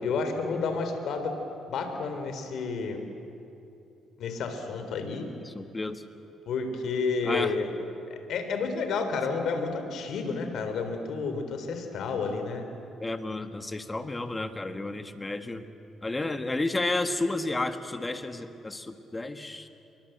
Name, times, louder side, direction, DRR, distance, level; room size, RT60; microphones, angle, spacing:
voice 1, 0.0-1.4 1.7-3.0 4.2-5.3 6.5-7.7 8.1-12.6, left 4 dB, 70° left, 6 dB, 3.6 m, -30 dB
voice 2, 5.4-6.0 7.2-7.5 13.0-15.7 16.0-19.7, left 2 dB, 20° left, 8 dB, 1.6 m, -32 dB
27.5 x 23.0 x 8.0 m, 2.8 s
cardioid pair, 90°, 0 cm